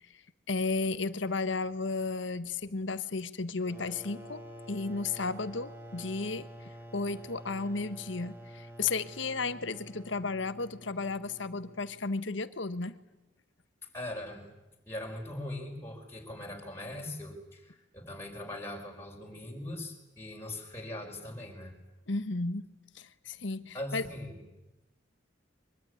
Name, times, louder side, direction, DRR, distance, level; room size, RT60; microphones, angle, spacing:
voice 1, 0.5-13.0 22.1-22.6 22.9-24.0, left 3 dB, 65° left, 13 dB, 1.3 m, -34 dB
sound 1, 3.6-12.1, equal, 10° right, 3.6 m, -48 dB
voice 2, 13.9-14.5 14.9-21.7 23.7-24.4, left 1 dB, 10° left, -1 dB, 5.3 m, -41 dB
24.0 x 23.0 x 9.7 m, 0.98 s
head